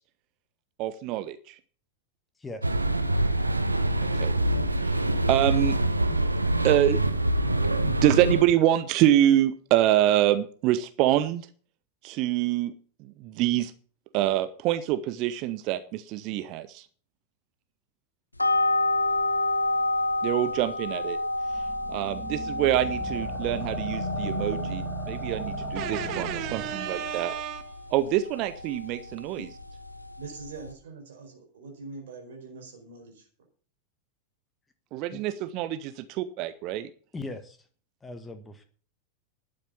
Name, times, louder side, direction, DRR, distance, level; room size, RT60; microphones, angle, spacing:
voice 1, 0.8-1.5 4.1-4.3 4.8-5.0 5.3-5.8 6.1-6.2 6.6-7.0 7.8-11.5 12.0-12.7 13.2-13.7 14.1-16.8 20.2-21.2 21.9-24.6 25.1-29.4 34.9-36.9, right 13 dB, 40° right, 13 dB, 0.8 m, -25 dB
voice 2, 2.4-2.8 35.1-35.2 37.1-37.6 38.0-38.6, left 2 dB, 10° left, 8 dB, 1.6 m, -39 dB
sound 1, 2.6-8.4, right 1 dB, 85° right, 1.0 m, -25 dB
sound 2, 18.4-30.7, left 2 dB, 85° left, 1.0 m, -30 dB
sound 3, 21.4-27.1, right 1 dB, 10° right, 3.2 m, -36 dB
voice 3, 30.2-33.3, right 4 dB, 60° right, 2 dB, 4.9 m, -43 dB
12.0 x 8.8 x 6.9 m, 0.44 s
figure-of-eight pair, 90°, 0 cm